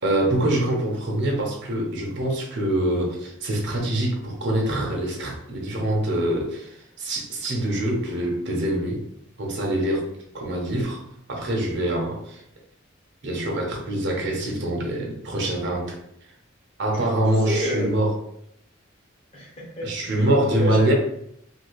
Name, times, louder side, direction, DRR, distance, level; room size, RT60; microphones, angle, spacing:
voice 1, 0.0-9.0 9.4-10.1 10.3-11.0 11.3-12.4 13.2-16.0 16.8-18.1 19.8-20.9, right 1 dB, 60° right, 0 dB, 0.8 m, -24 dB
voice 2, 17.4-17.9 19.3-20.9, equal, 30° left, -3 dB, 1.0 m, -30 dB
2.8 x 2.7 x 3.0 m, 0.73 s
head